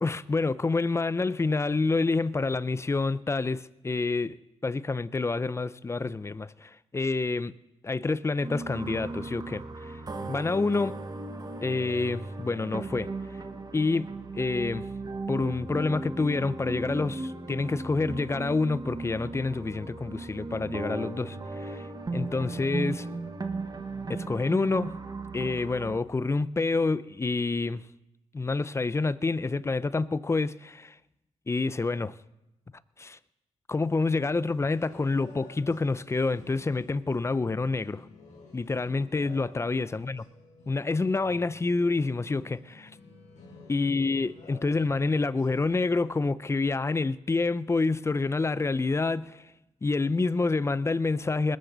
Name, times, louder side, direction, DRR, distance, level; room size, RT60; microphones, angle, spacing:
voice 1, 0.0-4.4 4.6-7.6 7.8-10.0 10.3-10.9 11.6-13.1 13.7-14.9 15.3-21.9 22.1-23.1 24.1-25.0 25.3-27.8 28.3-31.0 31.5-32.1 33.0-33.2 33.7-38.1 38.5-40.2 40.7-42.9 43.7-49.5 49.8-51.6, left 3 dB, 20° left, 0.5 m, -28 dB
sound 1, 8.4-26.0, right 3 dB, 30° right, 1.3 m, -36 dB
sound 2, 34.5-45.6, left 3 dB, 80° left, 4.5 m, -52 dB
20.0 x 13.0 x 4.0 m
cardioid pair, 70°, 12 cm